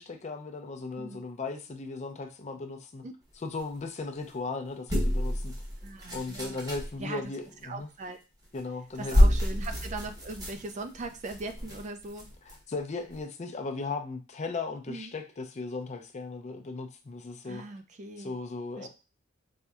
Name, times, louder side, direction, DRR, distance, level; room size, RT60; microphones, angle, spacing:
voice 1, 0.0-3.0 3.4-5.5 6.1-7.9 8.5-9.2 12.7-17.6 18.2-18.9, left 3 dB, 35° left, 0.4 m, -37 dB
voice 2, 1.0-1.3 3.0-3.1 5.8-6.6 7.0-7.2 7.6-8.2 9.0-12.3 14.9-15.1 17.4-18.4 18.8-18.9, right 3 dB, 35° right, 0.3 m, -40 dB
sound 1, 4.9-6.9 8.4-8.6 8.9-12.6 13.1-13.2, equal, 20° right, 0.8 m, -27 dB
4.2 x 2.6 x 2.3 m
head